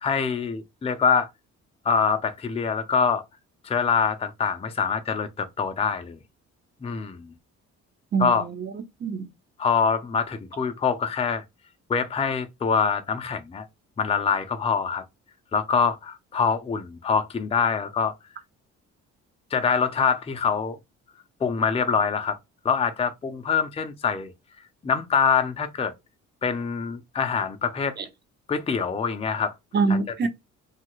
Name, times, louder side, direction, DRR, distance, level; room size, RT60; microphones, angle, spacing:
voice 1, 0.0-1.3 1.8-3.2 3.6-6.2 6.8-7.3 8.2-8.4 9.6-11.4 11.9-13.7 14.0-15.0 15.5-18.1 19.5-20.8 21.4-22.4 22.6-24.3 24.8-25.9 26.4-28.0 28.5-29.5 30.2-30.3, left 6 dB, 20° left, 0.4 m, -24 dB
voice 2, 8.1-9.3 28.0-28.1 29.7-30.3, right 4 dB, 35° right, 0.7 m, -25 dB
2.6 x 2.4 x 3.0 m
cardioid pair, 90°, 30 cm